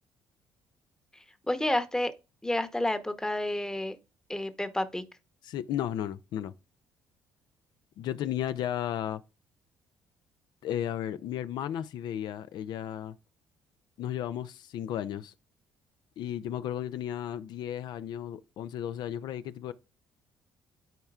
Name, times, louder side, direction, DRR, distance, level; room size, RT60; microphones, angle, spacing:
voice 1, 1.5-2.1 2.4-4.0 4.3-5.0, left 1 dB, 10° left, 0.9 m, -30 dB
voice 2, 5.4-6.5 8.0-9.2 10.6-13.2 14.0-15.3 16.2-19.7, left 10 dB, 70° left, 0.4 m, -34 dB
12.0 x 4.4 x 2.4 m
cardioid pair, 90°, 8 cm